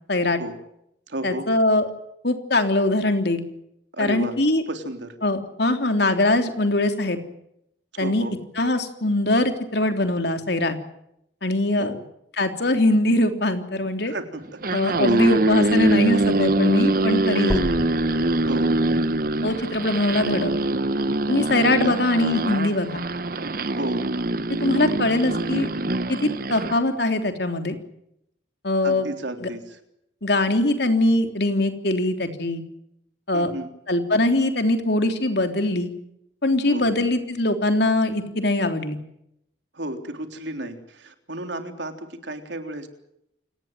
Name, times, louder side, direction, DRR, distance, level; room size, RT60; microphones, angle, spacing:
voice 1, 0.1-0.4 1.2-1.9 2.2-3.4 4.0-4.6 5.2-7.2 8.0-8.2 8.6-10.8 11.4-11.9 12.4-14.1 14.7-17.7 19.4-20.5 21.3-23.0 24.6-25.7 26.1-27.8 28.6-29.1 29.4-29.5 30.2-32.6 33.3-33.5 33.9-35.9 36.4-39.0, left 1 dB, 60° left, 6 dB, 3.4 m, -22 dB
voice 2, 1.1-1.5 3.9-4.4 4.7-5.2 7.9-8.4 11.8-12.0 14.0-14.4 15.1-15.2 17.3-17.5 18.4-18.7 21.7-21.9 23.7-24.0 28.8-29.8 33.3-33.7 36.7-36.9 39.7-42.9, right 1 dB, 70° right, 6 dB, 3.6 m, -33 dB
sound 1, 14.5-26.8, right 2 dB, 50° right, 1.0 m, -23 dB
sound 2, 17.5-21.5 22.1-22.2 22.7-22.8 23.2-23.3 24.1-24.2, equal, 20° left, 4.2 m, -35 dB
29.0 x 19.0 x 7.5 m, 0.79 s
head